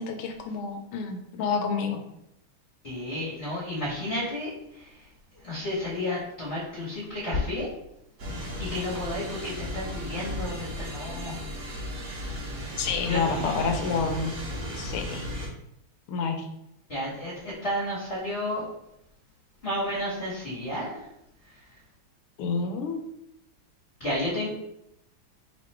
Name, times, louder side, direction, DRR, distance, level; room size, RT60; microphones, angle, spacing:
voice 1, 0.0-2.0 12.8-14.3 14.8-15.3 16.1-16.5 22.4-23.0, left 5 dB, 85° left, 5 dB, 1.6 m, -29 dB
voice 2, 2.8-4.5 5.4-7.7 8.6-11.4 13.1-13.8 16.9-17.3 17.6-18.6 19.6-21.0 24.0-24.5, left 1 dB, 30° left, -9 dB, 1.7 m, -31 dB
sound 1, 8.2-15.5, equal, 50° right, 1.2 m, -35 dB
3.6 x 3.0 x 4.3 m, 0.80 s
omnidirectional pair, 2.4 m